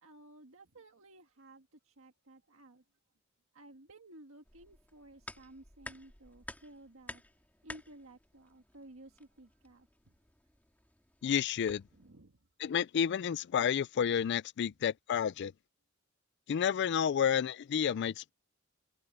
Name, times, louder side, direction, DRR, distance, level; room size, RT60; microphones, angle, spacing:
voice 1, 0.0-2.8 3.5-7.2 7.6-10.1 11.9-12.4, right 1 dB, 75° right, 1.7 m, -55 dB
sound 1, 4.4-12.1, left 1 dB, 10° left, 2.9 m, -52 dB
voice 2, 11.2-11.8 12.6-15.5 16.5-18.3, left 8 dB, 55° left, 0.3 m, -30 dB
head